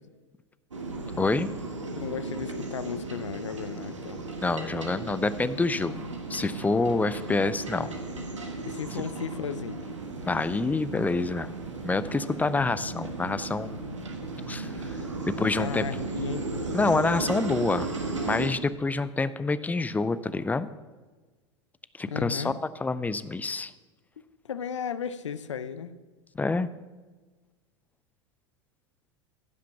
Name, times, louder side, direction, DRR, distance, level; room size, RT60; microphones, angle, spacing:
sound 1, 0.7-18.5, right 3 dB, 85° right, 1.5 m, -35 dB
voice 1, 1.2-1.5 4.4-7.9 10.2-11.5 11.8-13.8 14.5-15.0 15.2-15.8 16.7-17.9 18.2-20.7 22.0-22.5 22.8-23.7 26.4-26.7, left 3 dB, 10° left, 15 dB, 0.4 m, -27 dB
voice 2, 2.0-4.2 8.6-9.8 15.4-16.5 22.1-22.6 24.5-25.9, left 7 dB, 80° left, 13 dB, 0.6 m, -35 dB
15.0 x 5.8 x 5.8 m, 1.3 s
figure-of-eight pair, 85°, 15 cm